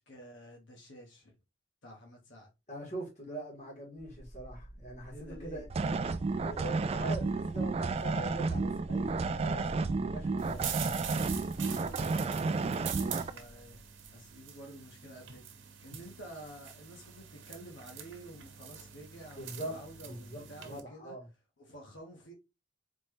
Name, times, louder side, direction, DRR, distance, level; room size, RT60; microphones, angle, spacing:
voice 1, 0.1-1.4 1.8-2.5 5.1-5.7 11.5-13.8 14.1-15.4 15.8-21.1 21.6-22.3, right 1 dB, 75° left, 1.3 m, -50 dB
voice 2, 2.7-5.9 6.4-11.0 19.4-21.3, right 2 dB, 40° left, 2.0 m, -43 dB
sound 1, 4.0-14.6, equal, 10° left, 1.6 m, -49 dB
sound 2, 5.7-13.3, right 3 dB, 35° right, 0.3 m, -32 dB
sound 3, 10.4-20.8, right 9 dB, 90° right, 0.9 m, -44 dB
4.3 x 3.2 x 3.1 m
head